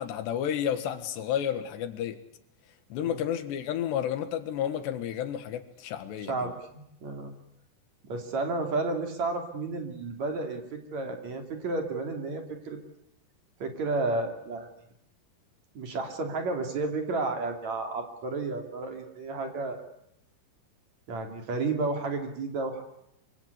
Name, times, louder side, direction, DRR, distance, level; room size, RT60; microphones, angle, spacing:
voice 1, 0.0-2.2 2.9-6.5, left 10 dB, 80° left, 9 dB, 3.8 m, -31 dB
voice 2, 6.3-7.3 8.0-12.8 13.6-14.7 15.8-19.8 21.1-22.8, right 3 dB, 45° right, 4 dB, 3.7 m, -32 dB
25.0 x 24.5 x 8.2 m, 0.77 s
omnidirectional pair, 4.9 m